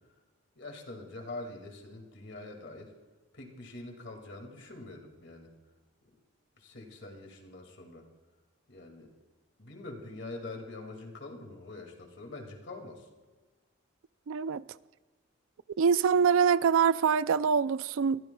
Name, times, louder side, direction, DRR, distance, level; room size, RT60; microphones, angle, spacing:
voice 1, 0.6-2.9 3.3-5.6 6.6-8.1 8.7-9.1 9.6-13.1, left 2 dB, 60° left, 2.1 m, -44 dB
voice 2, 14.3-14.6 15.8-18.2, right 6 dB, 80° right, 0.4 m, -24 dB
22.0 x 15.5 x 2.3 m
head